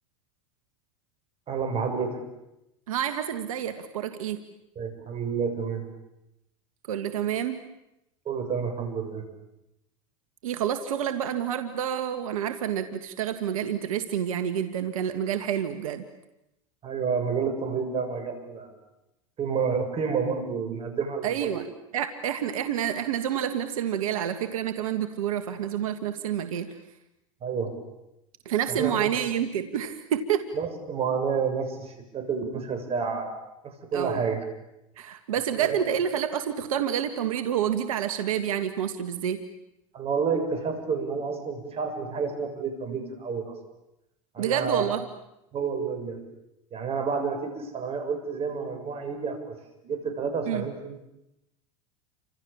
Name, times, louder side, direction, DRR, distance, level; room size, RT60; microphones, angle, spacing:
voice 1, 1.5-2.2 4.8-5.8 8.3-9.2 16.8-18.7 19.4-21.6 27.4-27.7 28.7-29.2 30.5-33.3 33.6-34.4 35.6-35.8 39.9-43.5 44.3-44.9 45.5-46.2 46.7-49.5 49.8-51.1, right 5 dB, 35° right, 6 dB, 7.5 m, -29 dB
voice 2, 2.9-4.4 6.9-7.6 10.4-16.0 21.2-21.6 21.9-26.7 28.5-30.4 33.9-34.2 35.0-39.4 44.4-45.0 50.5-50.6, right 9 dB, 80° right, 9 dB, 1.8 m, -28 dB
30.0 x 26.0 x 7.2 m, 0.89 s
hypercardioid pair, 100°, 17 cm